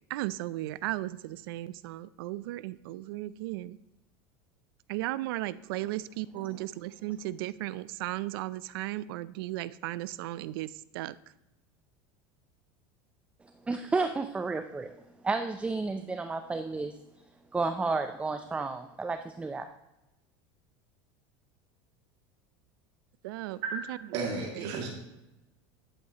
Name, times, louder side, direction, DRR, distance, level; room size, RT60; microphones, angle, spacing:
voice 1, 0.1-3.8 4.9-11.1 23.2-24.0 24.5-24.7, right 16 dB, 80° right, 17 dB, 0.4 m, -36 dB
voice 2, 13.7-14.9 15.2-16.9 17.5-19.7, right 3 dB, 10° right, 8 dB, 0.4 m, -31 dB
voice 3, 23.5-23.8 24.1-25.0, right 4 dB, 60° right, 0 dB, 2.2 m, -33 dB
10.5 x 8.6 x 2.9 m, 0.96 s
supercardioid pair, 125°, 12 cm